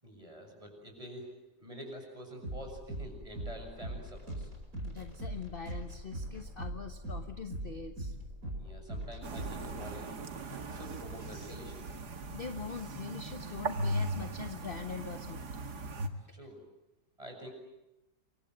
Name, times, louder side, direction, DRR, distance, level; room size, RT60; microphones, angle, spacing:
voice 1, 0.0-1.3 1.6-4.5 8.6-10.2 10.7-12.0 16.3-16.7 17.2-17.5, equal, 20° right, 3 dB, 7.3 m, -47 dB
sound 1, 2.4-12.1, right 1 dB, 55° right, 5.6 m, -42 dB
voice 2, 4.8-8.2 12.3-15.5, left 5 dB, 35° left, 7 dB, 1.3 m, -43 dB
sound 2, 9.2-16.1, right 1 dB, 70° right, 2.3 m, -38 dB
28.0 x 24.5 x 8.0 m, 0.93 s
omnidirectional pair, 1.8 m